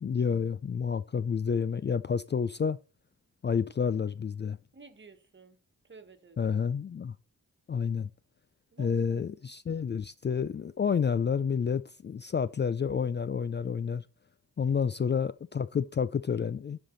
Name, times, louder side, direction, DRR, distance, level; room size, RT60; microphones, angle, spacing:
voice 1, 0.0-2.8 3.4-4.6 6.4-7.1 7.7-8.1 8.8-14.0 14.6-16.8, left 6 dB, 35° left, 0.4 m, -29 dB
voice 2, 4.7-5.6 5.8-6.6 8.7-9.2 14.6-15.0, right 4 dB, 35° right, 1.5 m, -53 dB
11.5 x 5.2 x 4.0 m
wide cardioid pair, 85°, 32 cm